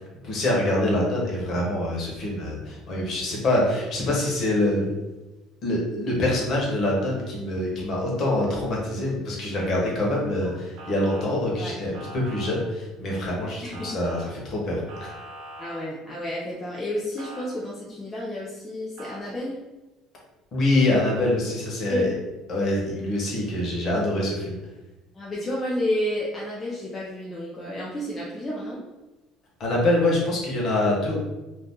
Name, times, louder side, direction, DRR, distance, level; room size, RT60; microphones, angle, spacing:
voice 1, 0.2-4.9 5.6-14.2 14.4-15.1 20.5-22.1 22.5-24.6 29.6-31.2, left 1 dB, 40° left, -3 dB, 1.1 m, -25 dB
Motor vehicle (road) / Siren, 10.8-11.3 11.9-12.5 13.7-14.3 14.9-15.8 17.2-17.4 19.0-19.2, right 1 dB, 75° right, 0.7 m, -41 dB
voice 2, 15.6-19.6 21.9-22.1 25.1-28.8, left 1 dB, 20° left, -5 dB, 0.5 m, -31 dB
2.7 x 2.4 x 3.6 m, 1.1 s
cardioid pair, 145°, 0 cm